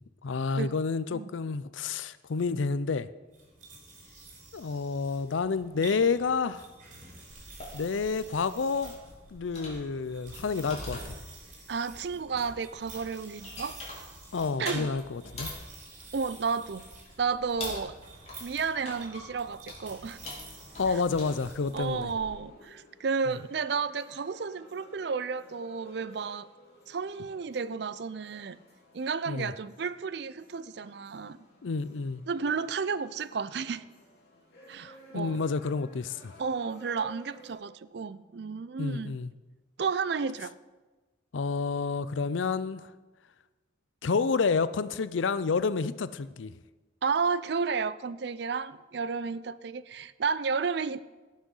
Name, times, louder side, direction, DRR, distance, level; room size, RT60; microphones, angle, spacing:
voice 1, 0.2-3.1 4.5-6.7 7.7-8.9 9.3-11.0 14.3-15.5 20.8-22.1 29.3-29.5 31.6-32.2 35.1-36.3 38.8-39.3 41.3-42.9 44.0-46.5, left 4 dB, 80° left, 0.5 m, -29 dB
sound 1, 3.3-22.2, right 3 dB, 40° right, 3.5 m, -50 dB
sound 2, 7.3-22.3, left 2 dB, 35° left, 3.1 m, -45 dB
voice 2, 11.7-13.8 14.6-14.9 16.1-16.9 17.2-18.0 18.4-20.2 20.9-21.0 21.7-26.5 26.9-28.6 28.9-31.4 32.3-33.9 34.7-35.4 36.4-39.1 39.8-40.5 47.0-51.0, right 5 dB, 60° right, 0.4 m, -32 dB
sound 3, 19.8-37.6, equal, 55° left, 3.3 m, -56 dB
17.5 x 6.3 x 5.5 m
head